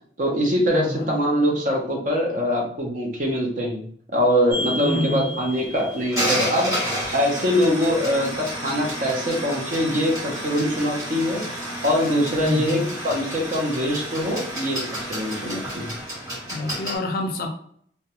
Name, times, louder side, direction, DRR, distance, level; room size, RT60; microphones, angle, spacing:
voice 1, 0.2-3.9 4.1-14.8 15.1-15.9, equal, 45° right, 0 dB, 0.6 m, -23 dB
voice 2, 0.7-1.2 4.8-5.4 12.4-12.9 16.5-17.5, left 2 dB, 50° left, 4 dB, 0.4 m, -27 dB
sound 1, 4.5-17.0, equal, 20° right, 1.1 m, -30 dB
2.3 x 2.1 x 2.8 m, 0.62 s
head